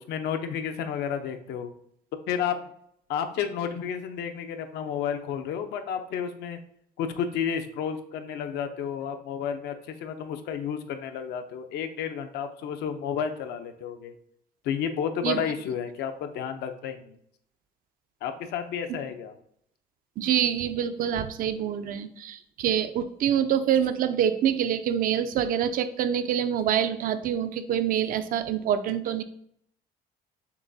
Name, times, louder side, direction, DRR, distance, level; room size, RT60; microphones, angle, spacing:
voice 1, 0.0-1.7 2.3-2.6 3.1-6.6 7.0-14.1 14.6-17.1 18.2-19.3, left 8 dB, 75° left, 7 dB, 0.5 m, -31 dB
voice 2, 20.2-29.2, right 9 dB, 55° right, 11 dB, 0.4 m, -26 dB
6.7 x 2.3 x 2.6 m, 0.68 s
cardioid pair, 110°, 17 cm